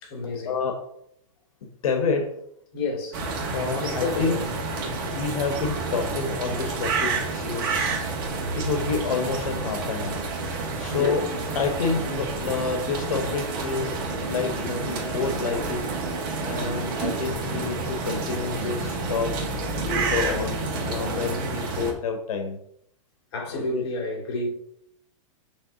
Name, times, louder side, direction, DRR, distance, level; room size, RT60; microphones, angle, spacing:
voice 1, 0.0-0.6 2.7-3.2 3.8-4.4 10.9-11.2 23.3-24.5, left 2 dB, 45° left, 2.8 m, -30 dB
voice 2, 1.8-2.3 3.5-4.4 4.8-8.1 8.5-10.2 10.8-11.2 11.5-15.8 16.4-19.3 19.8-22.6 23.5-23.8, left 5 dB, 85° left, 1.2 m, -29 dB
sound 1, 3.1-21.9, right 3 dB, 40° right, 1.5 m, -29 dB
6.9 x 3.3 x 5.7 m
supercardioid pair, 175°, 18 cm